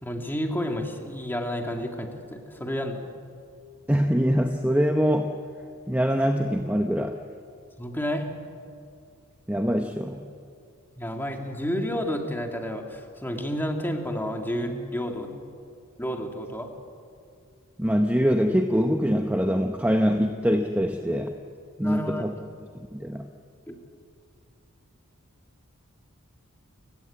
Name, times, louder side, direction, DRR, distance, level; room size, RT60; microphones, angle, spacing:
voice 1, 0.0-3.0 7.8-8.4 11.0-15.4 16.0-16.7 21.8-22.3 23.7-23.8, equal, 10° left, 3 dB, 2.4 m, -30 dB
voice 2, 3.9-5.3 5.9-7.1 9.5-10.3 17.8-21.3 21.8-22.3 22.7-23.3, equal, 10° right, 4 dB, 0.9 m, -23 dB
30.0 x 17.0 x 8.7 m, 2.4 s
head